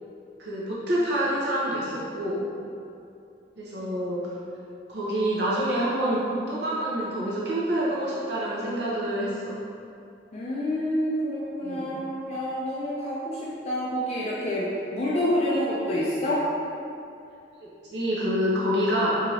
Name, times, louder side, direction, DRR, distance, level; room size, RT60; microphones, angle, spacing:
voice 1, 0.4-2.5 3.6-4.2 4.9-9.5 11.6-12.0 17.9-19.1, equal, 75° right, -7 dB, 0.7 m, -27 dB
voice 2, 10.3-16.4, equal, 35° left, -6 dB, 0.4 m, -28 dB
3.2 x 2.8 x 3.6 m, 2.5 s
head